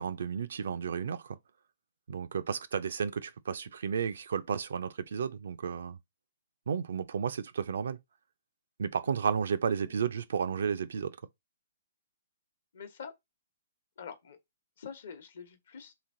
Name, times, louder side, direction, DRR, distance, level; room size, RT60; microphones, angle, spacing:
voice 1, 0.0-1.4 2.1-6.0 6.7-8.0 8.8-11.1, right 6 dB, 65° right, 0.4 m, -32 dB
voice 2, 12.7-13.1 14.0-14.4 14.8-15.9, left 6 dB, 60° left, 0.9 m, -46 dB
3.4 x 3.0 x 2.6 m
hypercardioid pair, 130°, 0 cm